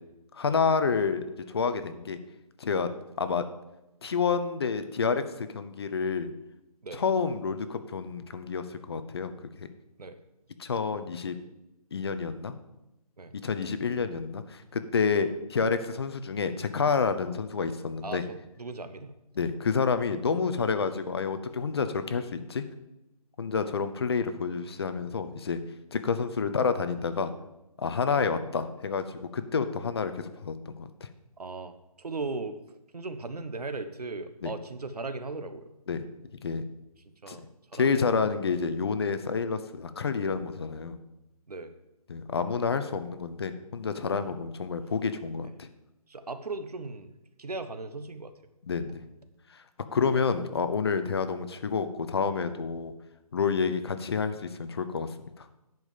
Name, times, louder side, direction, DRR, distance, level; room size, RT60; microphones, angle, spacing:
voice 1, 0.3-2.2 2.6-2.9 3.2-3.4 4.0-6.3 6.9-9.3 10.6-11.4 11.9-12.5 13.4-18.2 19.4-22.6 23.4-25.6 25.9-27.3 27.8-31.1 34.4-34.5 35.9-36.0 36.4-36.6 37.3-37.4 37.7-41.0 42.1-45.7 48.7-49.0 49.9-52.9 53.3-55.1 55.4-55.5, left 5 dB, 40° left, 10 dB, 0.8 m, -29 dB
voice 2, 18.0-19.1 24.6-24.9 28.1-28.2 31.4-32.6 32.9-35.7 37.2-38.2 41.5-41.7 44.3-44.4 45.4-45.5 46.1-47.1 47.4-48.3, right 3 dB, 80° right, 10 dB, 1.2 m, -38 dB
10.5 x 5.2 x 7.4 m, 0.93 s
figure-of-eight pair, 160°, 20 cm